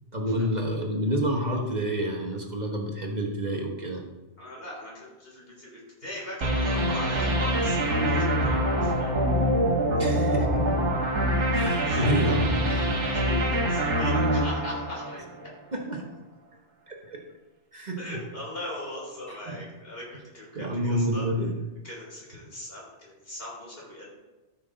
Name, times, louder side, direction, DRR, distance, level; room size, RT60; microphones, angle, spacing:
voice 1, 0.1-4.0 10.0-10.9 11.5-13.0 13.5-13.6 15.7-16.1 16.9-17.2 17.7-18.2 19.3-19.6 20.5-21.6, equal, 40° right, 1 dB, 1.4 m, -29 dB
voice 2, 4.4-9.3 11.8-12.0 12.8-15.2 18.0-20.1 20.3-21.3 21.8-24.1, left 1 dB, 55° left, -4 dB, 3.8 m, -39 dB
sound 1, 6.4-15.5, equal, 75° right, 1.7 m, -25 dB
13.5 x 5.9 x 3.9 m, 1.1 s
omnidirectional pair, 1.2 m